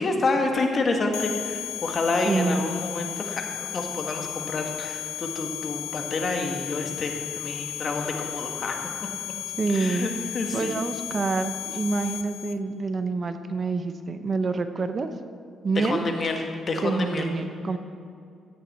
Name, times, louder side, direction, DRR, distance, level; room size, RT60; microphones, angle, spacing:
voice 1, 0.0-9.4 9.7-10.7 15.7-17.3, left 3 dB, 45° left, 3 dB, 1.6 m, -28 dB
sound 1, 1.1-12.5, left 13 dB, 85° left, 0.7 m, -34 dB
voice 2, 2.3-2.6 9.6-10.1 10.5-15.1 15.6-16.0 16.8-17.8, right 4 dB, 40° right, 9 dB, 0.7 m, -27 dB
13.5 x 9.4 x 4.3 m, 2.4 s
cardioid pair, 90°, 0 cm